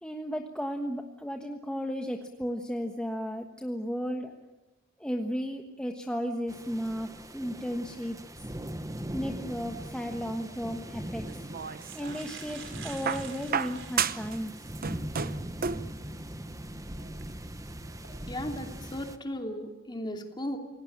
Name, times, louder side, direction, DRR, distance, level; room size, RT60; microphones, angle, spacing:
voice 1, 0.0-4.3 5.0-8.5 9.1-11.4 11.9-14.5, equal, 5° left, 3 dB, 1.3 m, -34 dB
sound 1, 6.5-19.2, right 1 dB, 15° right, 1.2 m, -40 dB
sound 2, 10.4-10.5 11.3-11.4 11.7-14.5 15.1-15.2 17.0-17.2 17.8-18.1, right 7 dB, 65° right, 4.4 m, -47 dB
sound 3, 11.3-12.3 13.1-14.4 14.7-15.9 17.0-17.1, right 7 dB, 45° right, 0.9 m, -32 dB
voice 2, 18.3-20.6, left 1 dB, 20° left, 3 dB, 2.9 m, -36 dB
28.5 x 18.0 x 8.8 m, 1.1 s
head